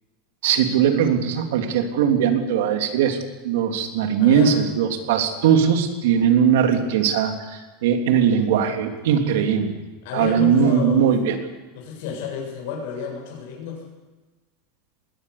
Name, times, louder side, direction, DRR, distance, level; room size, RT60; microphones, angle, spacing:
voice 1, 0.4-3.2 3.4-9.7 10.1-11.4, right 8 dB, 75° right, 5 dB, 3.3 m, -20 dB
voice 2, 4.2-4.6 10.0-11.1 11.7-13.8, left 6 dB, 60° left, -1 dB, 7.6 m, -30 dB
21.0 x 18.5 x 8.5 m, 1.2 s
supercardioid pair, 170°, 0 cm